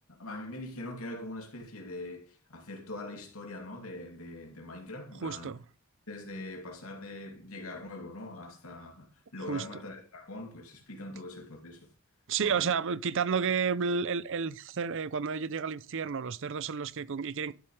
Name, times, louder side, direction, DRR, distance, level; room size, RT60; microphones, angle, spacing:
voice 1, 0.0-5.5 6.1-11.9 12.4-12.7, left 2 dB, 80° left, 2.6 m, -42 dB
voice 2, 5.2-5.6 9.5-9.8 12.3-17.5, right 6 dB, 60° right, 0.6 m, -31 dB
12.5 x 7.2 x 3.3 m
head